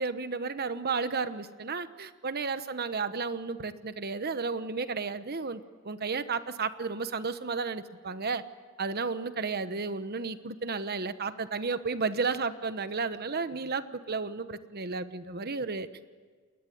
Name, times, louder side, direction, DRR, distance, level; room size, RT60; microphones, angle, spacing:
voice 1, 0.0-8.4 8.8-15.9, right 4 dB, 50° right, 12 dB, 1.1 m, -33 dB
29.5 x 21.0 x 9.5 m, 1.6 s
head